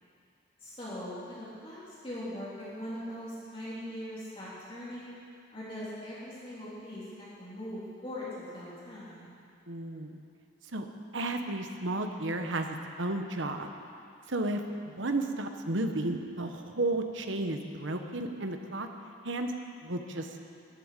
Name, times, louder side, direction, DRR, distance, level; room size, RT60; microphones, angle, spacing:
voice 1, 0.6-5.1 5.5-8.3 8.5-9.3, equal, 30° left, -9 dB, 3.6 m, -41 dB
voice 2, 9.7-10.2 10.7-10.9 11.1-13.7 14.3-18.9 19.2-19.5 19.8-20.4, right 2 dB, 70° right, 5 dB, 1.2 m, -33 dB
14.0 x 8.8 x 9.8 m, 2.5 s
head